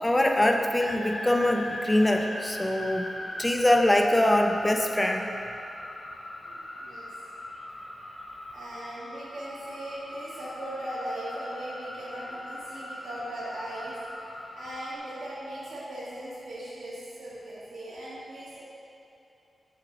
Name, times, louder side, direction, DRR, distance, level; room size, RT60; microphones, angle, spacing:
voice 1, 0.0-3.1 3.4-5.3, left 1 dB, 20° left, 3 dB, 0.6 m, -23 dB
sound 1, 0.8-15.0, left 1 dB, 75° left, 1.2 m, -40 dB
voice 2, 6.4-7.1 8.5-14.0 14.2-18.6, right 1 dB, 90° right, -8 dB, 1.6 m, -39 dB
8.5 x 3.2 x 5.8 m, 2.8 s
cardioid pair, 75°, 0 cm